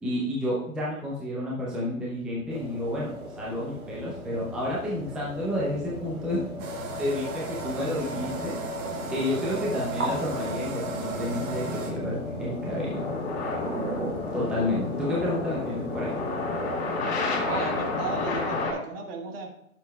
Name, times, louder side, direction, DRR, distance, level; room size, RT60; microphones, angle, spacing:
voice 1, 0.0-3.1 3.4-6.4 7.0-8.5 9.1-13.1 14.3-16.2, left 1 dB, ahead, -6 dB, 0.6 m, -30 dB
sound 1, 2.5-18.7, right 2 dB, 90° right, 2.1 m, -39 dB
sound 2, 2.6-18.7, left 3 dB, 45° left, 3.4 m, -33 dB
sound 3, 6.6-11.9, right 3 dB, 25° right, 1.2 m, -35 dB
voice 2, 17.4-19.5, right 3 dB, 45° right, 3 dB, 1.5 m, -35 dB
12.0 x 7.0 x 2.3 m, 0.76 s
hypercardioid pair, 135°, 42 cm